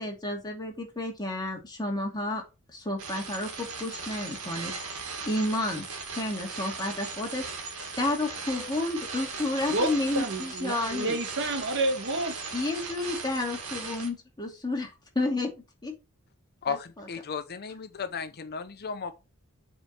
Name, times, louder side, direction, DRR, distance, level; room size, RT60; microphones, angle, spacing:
voice 1, 0.0-2.4 2.7-4.9 5.3-5.8 6.1-7.5 8.0-11.1 12.5-15.5 15.8-15.9 16.7-17.1, left 2 dB, 20° left, 2.5 m, -31 dB
sound 1, 3.0-14.1, right 4 dB, 90° right, 2.3 m, -38 dB
voice 2, 9.7-12.4, right 2 dB, 60° right, 1.4 m, -29 dB
voice 3, 16.6-19.1, left 5 dB, 45° left, 0.7 m, -34 dB
7.9 x 4.5 x 5.3 m
head